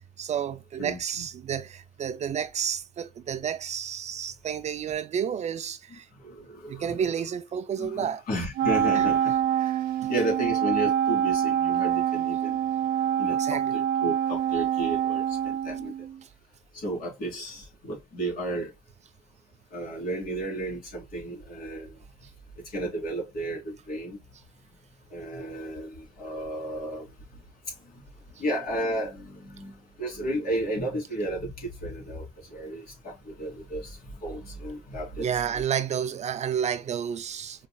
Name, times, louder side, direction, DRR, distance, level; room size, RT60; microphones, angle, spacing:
voice 1, 0.2-6.1 6.7-8.3 8.9-10.3 13.4-13.8 16.2-16.3 35.2-37.7, right 8 dB, 40° right, 0.5 m, -31 dB
voice 2, 6.2-6.9 7.8-9.3 9.6-9.7 10.1-12.6 13.2-15.9 16.7-18.7 19.7-21.9 22.7-24.2 25.1-27.1 28.4-35.6, right 1 dB, 60° left, 3.0 m, -33 dB
Wind instrument woodwind instrument, 8.6-16.2, right 10 dB, 80° right, 0.7 m, -26 dB
5.3 x 3.3 x 2.3 m
cardioid pair, 110°, 17 cm